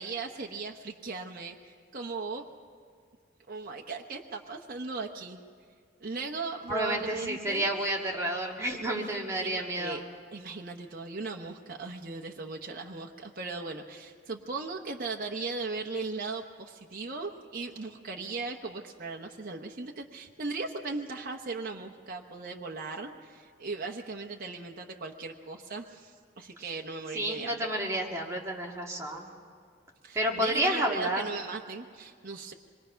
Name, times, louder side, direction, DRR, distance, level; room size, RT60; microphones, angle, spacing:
voice 1, 0.0-2.5 3.5-5.4 6.0-7.7 9.4-10.0 10.3-27.7 30.0-32.5, right 3 dB, 50° right, 1 dB, 1.0 m, -38 dB
voice 2, 6.7-10.0 27.1-29.3 30.1-31.3, right 1 dB, 15° right, -1 dB, 2.1 m, -30 dB
25.5 x 21.5 x 5.8 m, 2.1 s
head